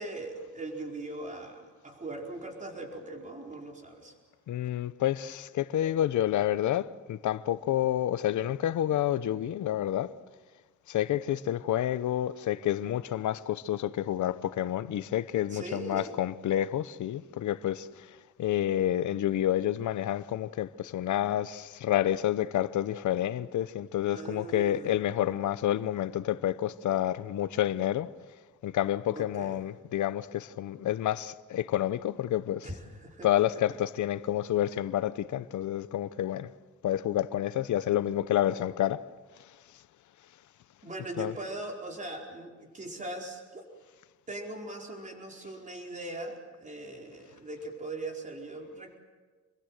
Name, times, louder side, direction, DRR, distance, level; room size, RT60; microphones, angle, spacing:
voice 1, 0.0-4.1 15.5-16.1 24.1-25.0 29.1-29.6 32.6-33.3 40.8-43.6 44.3-49.0, right 2 dB, 25° right, 4.6 m, -40 dB
voice 2, 4.5-10.1 10.9-28.1 28.6-32.8 33.2-36.5 36.8-39.0 41.2-41.3, left 12 dB, 85° left, 0.9 m, -29 dB
28.0 x 22.0 x 7.8 m
cardioid pair, 135°, 29 cm